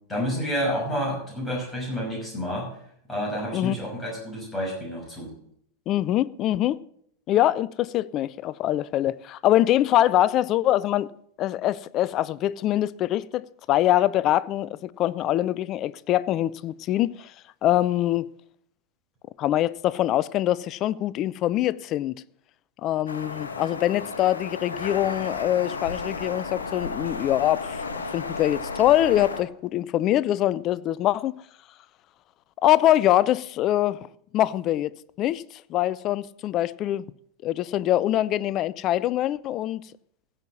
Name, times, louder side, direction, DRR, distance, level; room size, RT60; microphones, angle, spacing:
voice 1, 0.1-2.8 3.1-5.3, equal, 10° left, 6.0 m, -29 dB
voice 2, 5.9-6.8 7.3-11.1 11.4-17.3 17.6-18.3 19.4-22.1 22.8-27.8 28.1-31.3 32.6-34.1 34.3-34.9 35.2-37.0 37.4-39.8, left 13 dB, 35° left, 0.4 m, -24 dB
sound 1, 23.1-29.4, left 4 dB, 70° left, 1.2 m, -33 dB
16.0 x 5.7 x 7.2 m
figure-of-eight pair, 90°, 0 cm